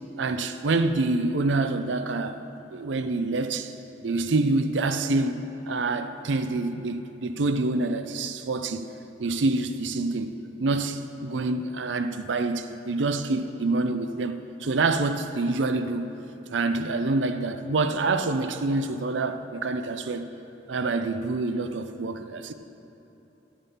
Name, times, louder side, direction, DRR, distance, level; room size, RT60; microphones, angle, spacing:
voice 1, 0.2-2.4 2.7-3.7 4.0-8.9 9.2-10.3 10.6-16.1 16.5-20.3 20.7-22.5, right 3 dB, 85° right, 0.5 m, -26 dB
11.0 x 8.7 x 5.6 m
head